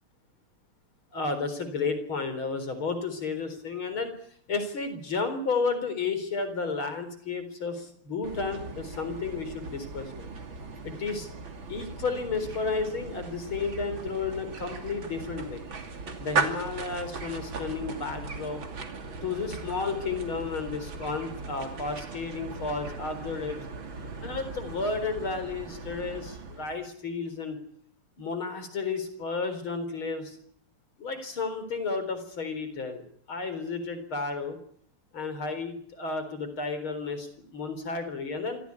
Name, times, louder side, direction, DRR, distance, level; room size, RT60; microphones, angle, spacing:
voice 1, 1.1-4.1 4.5-10.3 10.8-11.3 11.7-15.6 16.2-18.6 19.2-23.6 24.2-27.6 28.2-30.4 31.0-34.6 35.1-38.6, left 4 dB, 70° left, 10 dB, 4.9 m, -32 dB
sound 1, 8.2-26.9, right 4 dB, 65° right, 3.4 m, -38 dB
25.5 x 16.5 x 9.8 m, 0.64 s
omnidirectional pair, 2.4 m